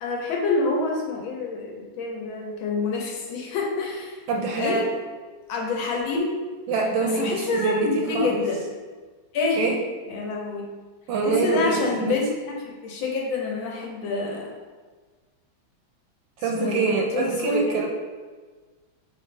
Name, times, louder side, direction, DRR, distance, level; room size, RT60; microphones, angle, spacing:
voice 1, 0.0-4.2 4.6-4.8 5.5-6.3 7.0-8.6 9.3-9.6 10.1-10.7 11.2-12.3 12.6-14.5 16.5-17.9, left 3 dB, 75° left, -1 dB, 1.5 m, -27 dB
voice 2, 4.3-4.9 6.7-8.4 9.6-9.8 11.1-12.2 16.4-17.9, right 4 dB, 75° right, -1 dB, 1.2 m, -25 dB
4.6 x 2.5 x 3.2 m, 1.4 s
omnidirectional pair, 2.3 m